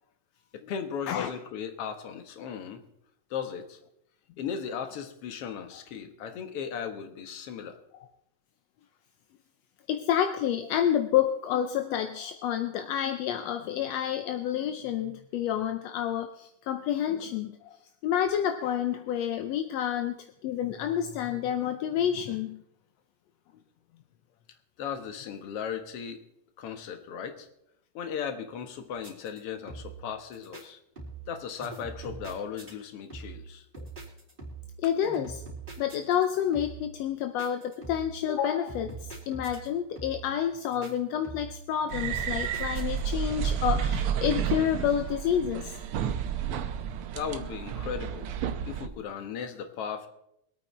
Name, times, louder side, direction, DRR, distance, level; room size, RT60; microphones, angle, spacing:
voice 1, 0.5-2.8 3.3-3.8 4.4-7.8 24.8-26.2 26.6-27.5 27.9-30.8 31.3-33.7 47.2-48.3 48.7-50.1, left 7 dB, 55° left, 8 dB, 2.0 m, -36 dB
voice 2, 9.9-17.6 18.0-20.1 20.4-22.6 34.8-35.4 35.8-39.0 39.3-45.7, left 9 dB, 75° left, 8 dB, 1.6 m, -29 dB
sound 1, 29.0-29.4 29.7-30.1 30.3-30.6 31.0-31.3 31.6-32.7 33.1-33.5 33.7-34.8 35.0-36.3 36.5-36.9 37.4-38.2 38.7-39.7 40.0-40.3 40.6-40.9 41.2-41.6 41.9-43.1 43.4-43.8, right 4 dB, 15° right, 3.4 m, -43 dB
sound 2, 41.9-48.9, right 8 dB, 80° right, 1.2 m, -31 dB
23.5 x 8.8 x 4.2 m, 0.78 s
omnidirectional pair, 3.6 m